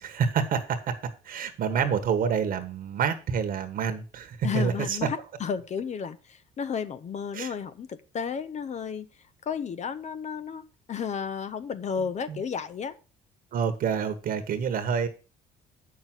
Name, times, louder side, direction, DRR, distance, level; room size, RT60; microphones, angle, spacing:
voice 1, 0.0-5.0 7.3-7.5 12.3-12.4 13.5-15.1, right 7 dB, 60° right, 8 dB, 1.4 m, -28 dB
voice 2, 4.4-9.1 9.4-12.9, left 6 dB, 45° left, 12 dB, 0.9 m, -33 dB
8.3 x 6.2 x 6.1 m, 0.34 s
cardioid pair, 110°, 17 cm